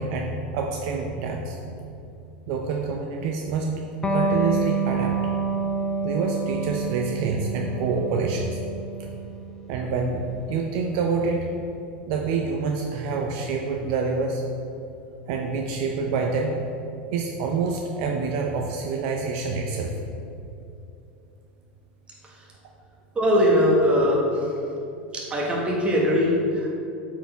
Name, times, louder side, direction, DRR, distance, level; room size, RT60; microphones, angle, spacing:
voice 1, 0.0-1.6 2.5-3.8 4.1-5.2 6.0-8.6 9.7-11.5 12.1-14.4 15.3-16.6 17.1-20.0, right 4 dB, 60° right, 1 dB, 0.6 m, -27 dB
Electric guitar, 4.0-11.2, right 4 dB, 15° left, 0.7 m, -28 dB
voice 2, 23.1-24.2 25.1-26.8, equal, 20° right, -3 dB, 1.6 m, -21 dB
8.0 x 4.7 x 3.5 m, 2.7 s
supercardioid pair, 115°, 5 cm